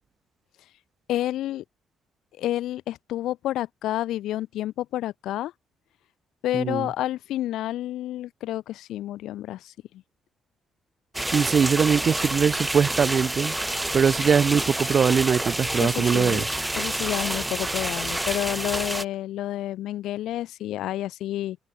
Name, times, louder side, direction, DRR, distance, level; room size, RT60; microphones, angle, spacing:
voice 1, 1.1-1.6 2.4-5.5 6.4-9.7 15.8-16.4 16.7-21.6, left 14 dB, 85° left, 1.8 m, -29 dB
voice 2, 6.5-6.9 11.3-13.6 13.9-16.5, right 6 dB, 50° right, 0.4 m, -22 dB
sound 1, 11.1-19.0, right 1 dB, 10° right, 0.8 m, -28 dB
open air
cardioid pair, 90°, 0 cm